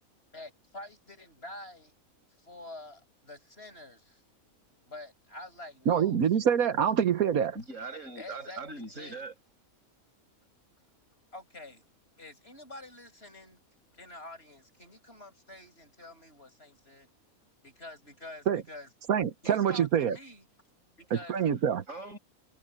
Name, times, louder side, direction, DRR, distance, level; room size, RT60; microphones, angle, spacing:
voice 1, 0.3-1.9 2.4-4.2 4.9-6.4 8.2-9.2 11.3-11.9 12.2-13.6 13.9-17.1 17.6-18.9 19.4-20.4 21.0-21.4, left 2 dB, 45° left, 7.5 m, -47 dB
voice 2, 5.9-7.5 18.5-18.6 19.1-20.2 21.1-21.8, right 8 dB, 85° right, 1.5 m, -25 dB
voice 3, 7.5-9.4 21.4-22.2, right 3 dB, 65° right, 8.6 m, -41 dB
omnidirectional pair, 1.5 m